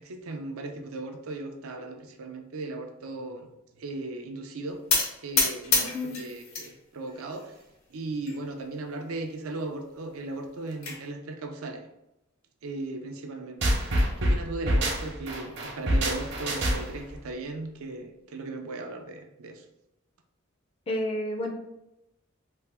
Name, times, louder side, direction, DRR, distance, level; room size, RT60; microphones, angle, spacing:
voice 1, 0.0-3.5 3.8-4.8 5.2-7.5 7.9-11.8 12.6-13.8 14.2-19.6, right 2 dB, 90° right, 4 dB, 0.5 m, -37 dB
sound 1, 4.9-6.7 7.1-7.7 8.3-8.4 8.6-8.7 9.1-9.2 10.3-11.0, left 4 dB, 80° left, 0.8 m, -27 dB
voice 2, 5.8-6.2 20.9-21.5, left 1 dB, 25° left, 2 dB, 0.4 m, -31 dB
sound 2, 13.6-17.1, equal, 60° right, 0.8 m, -26 dB
3.3 x 2.1 x 3.4 m, 0.88 s
head